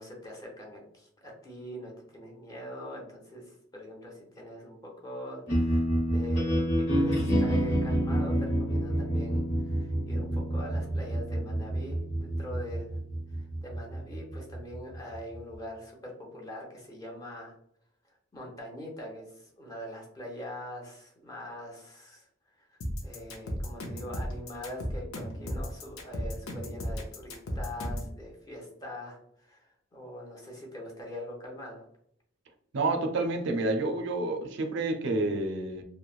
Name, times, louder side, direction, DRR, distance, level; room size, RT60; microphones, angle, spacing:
voice 1, 0.0-13.0 13.3-17.5 18.3-22.3 22.7-31.9, left 1 dB, 20° left, 0.6 m, -43 dB
sound 1, 5.5-15.6, right 1 dB, 70° left, 1.1 m, -29 dB
sound 2, 22.8-28.1, equal, 90° left, 0.6 m, -34 dB
voice 2, 32.7-35.8, right 2 dB, 60° right, 0.4 m, -29 dB
3.0 x 2.1 x 2.3 m
head